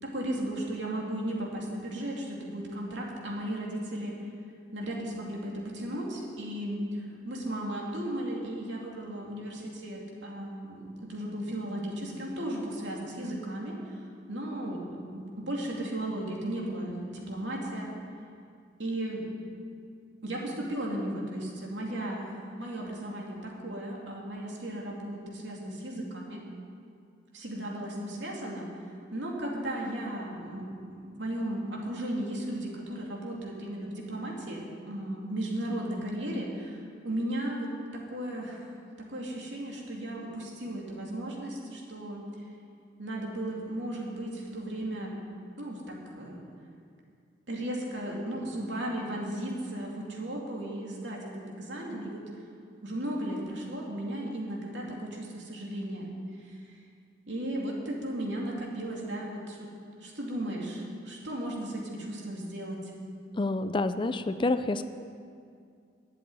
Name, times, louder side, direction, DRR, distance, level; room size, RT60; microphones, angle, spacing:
voice 1, 0.0-4.2 4.7-17.9 18.8-19.3 20.2-26.4 27.3-28.7 29.1-42.3 43.0-45.2 45.6-46.5 47.5-52.2 52.8-56.1 56.4-56.8 57.3-59.7 60.0-62.9, right 1 dB, 75° right, -2 dB, 2.6 m, -35 dB
voice 2, 63.4-64.9, left 2 dB, 25° left, 11 dB, 0.4 m, -28 dB
12.0 x 7.7 x 9.7 m, 2.3 s
head